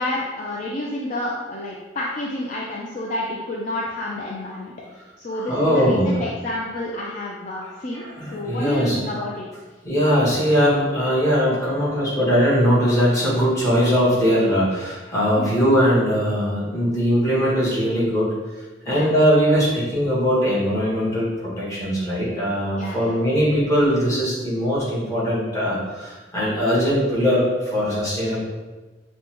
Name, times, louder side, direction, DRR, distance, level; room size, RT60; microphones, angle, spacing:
voice 1, 0.0-4.7 5.2-8.0 8.3-9.5 15.4-15.6 18.9-19.1 22.8-23.2, left 1 dB, 45° left, -4 dB, 0.4 m, -29 dB
voice 2, 5.3-6.2 7.9-9.0 9.8-18.3 18.8-28.4, equal, 15° left, -8 dB, 1.3 m, -20 dB
5.1 x 2.1 x 2.9 m, 1.2 s
head